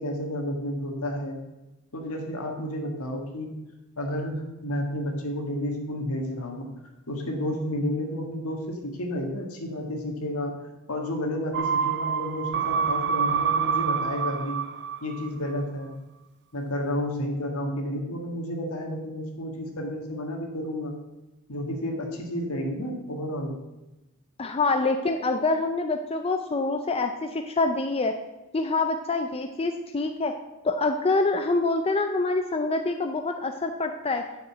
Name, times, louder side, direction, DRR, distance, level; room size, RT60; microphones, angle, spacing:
voice 1, 0.0-1.4 1.9-3.5 4.0-6.7 7.1-10.5 10.9-14.6 15.0-15.9 16.5-21.0 21.5-23.5, left 1 dB, 70° left, 2 dB, 1.8 m, -31 dB
sound 1, 11.5-15.3 15.6-15.7, right 7 dB, 50° right, 0.5 m, -27 dB
voice 2, 24.4-28.1 28.5-30.3 30.6-34.2, left 3 dB, 25° left, 5 dB, 0.5 m, -26 dB
6.7 x 6.7 x 7.7 m, 1.0 s
head